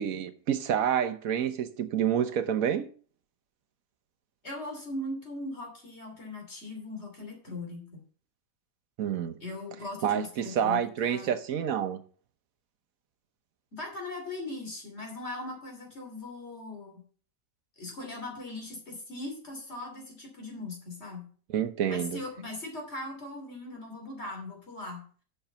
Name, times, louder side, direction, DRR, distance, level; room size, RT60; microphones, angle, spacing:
voice 1, 0.0-2.9 9.0-9.3 10.0-12.0 21.5-22.2, right 9 dB, 65° right, 1.2 m, -28 dB
voice 2, 4.4-8.0 9.4-11.3 13.7-17.0 17.8-21.3 21.9-25.2, left 2 dB, 45° left, 3.3 m, -39 dB
8.0 x 5.8 x 6.7 m
omnidirectional pair, 1.6 m